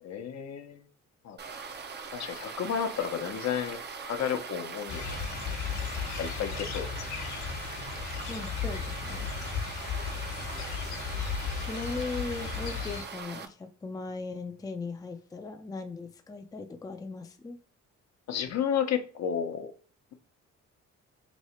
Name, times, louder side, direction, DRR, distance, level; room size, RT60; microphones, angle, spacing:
voice 1, 0.0-0.9 1.2-1.4 2.1-3.8 4.0-5.2 6.2-6.9 18.3-19.7, left 8 dB, 60° left, 7 dB, 0.8 m, -32 dB
sound 1, 1.4-13.5, right 5 dB, 35° right, 0.6 m, -41 dB
sound 2, 4.9-13.0, left 6 dB, 80° left, 1.1 m, -35 dB
voice 2, 8.3-9.3 11.5-17.6, left 3 dB, 10° left, 5 dB, 0.4 m, -38 dB
3.1 x 2.8 x 4.3 m, 0.40 s
cardioid pair, 90°, 30 cm